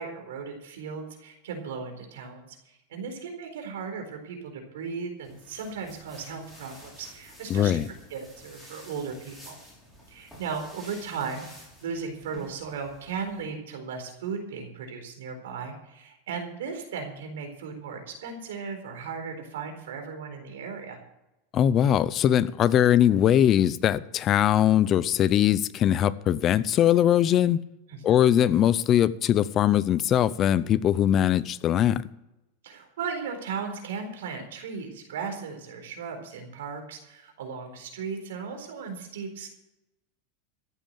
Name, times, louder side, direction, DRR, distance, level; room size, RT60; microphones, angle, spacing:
voice 1, 0.0-9.6 10.1-21.0 27.9-28.3 32.6-39.5, right 5 dB, 90° right, 4.1 m, -36 dB
sound 1, 5.2-13.5, equal, ahead, 6.0 m, -50 dB
voice 2, 7.5-7.9 21.5-27.6 28.0-32.0, left 10 dB, 30° left, 0.6 m, -21 dB
14.0 x 8.9 x 7.6 m
supercardioid pair, 155°, 0 cm